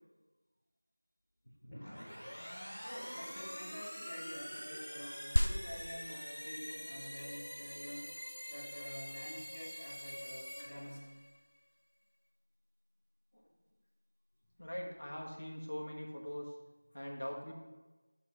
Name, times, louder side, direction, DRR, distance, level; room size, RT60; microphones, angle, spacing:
voice 1, 1.7-2.1 2.8-8.1 8.5-11.0, equal, 20° left, -7 dB, 1.2 m, -48 dB
sound 1, 1.7-11.4, equal, ahead, 0.8 m, -46 dB
sound 2, 5.4-15.3, equal, 85° left, 0.4 m, -41 dB
voice 2, 14.6-16.5 16.9-17.5, equal, 55° left, -1 dB, 1.1 m, -42 dB
8.4 x 3.2 x 5.7 m, 1.2 s
figure-of-eight pair, 180°, 0 cm